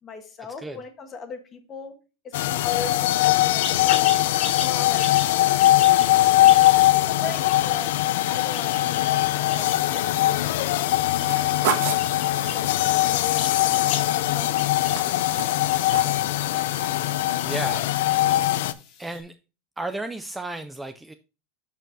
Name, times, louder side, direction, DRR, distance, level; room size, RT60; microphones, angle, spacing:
voice 1, 0.0-1.9 2.2-7.9 8.3-16.3, left 5 dB, 25° left, 6 dB, 1.3 m, -40 dB
sound 1, 2.3-18.7, left 15 dB, 75° left, 0.4 m, -21 dB
sound 2, 3.5-19.2, left 6 dB, 45° left, 1.8 m, -40 dB
sound 3, 11.0-14.4 14.7-16.2 16.5-16.9 17.3-17.4, right 8 dB, 65° right, 1.4 m, -32 dB
voice 2, 17.4-18.5 19.0-19.4 19.8-21.1, right 2 dB, 5° right, 8 dB, 0.3 m, -34 dB
12.0 x 4.5 x 2.6 m, 0.31 s
supercardioid pair, 150°, 0 cm